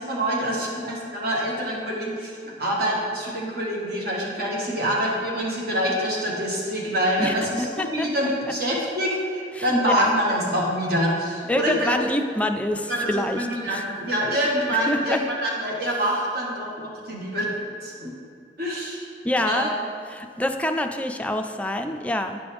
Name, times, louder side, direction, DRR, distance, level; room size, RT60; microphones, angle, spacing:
voice 1, 0.0-2.3 2.6-7.7 7.9-12.0 12.9-17.5 17.8-18.1 18.6-19.0 19.4-19.7, equal, 60° right, -3 dB, 1.6 m, -25 dB
voice 2, 7.2-8.1 9.6-10.1 11.5-13.8 14.9-15.2 19.2-19.7 20.1-22.4, left 1 dB, 10° left, 5 dB, 0.4 m, -26 dB
10.0 x 5.3 x 3.4 m, 2.3 s
head